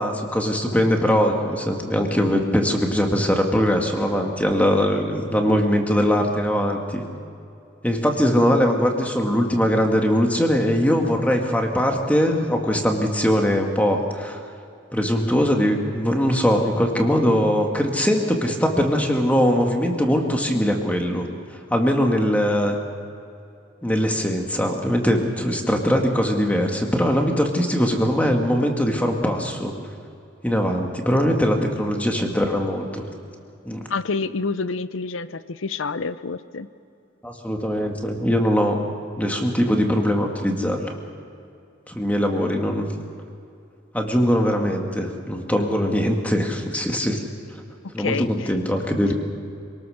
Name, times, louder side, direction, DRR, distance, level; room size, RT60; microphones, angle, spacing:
voice 1, 0.0-7.0 7.8-14.4 14.9-21.2 21.7-22.8 23.8-29.7 30.4-33.0 33.6-33.9 37.2-38.8 39.2-40.9 41.9-42.9 43.9-47.2 47.9-49.1, equal, 5° left, 2 dB, 2.0 m, -21 dB
voice 2, 33.9-36.7 48.0-48.5, left 4 dB, 75° left, 15 dB, 0.7 m, -28 dB
26.5 x 19.0 x 6.5 m, 2.6 s
head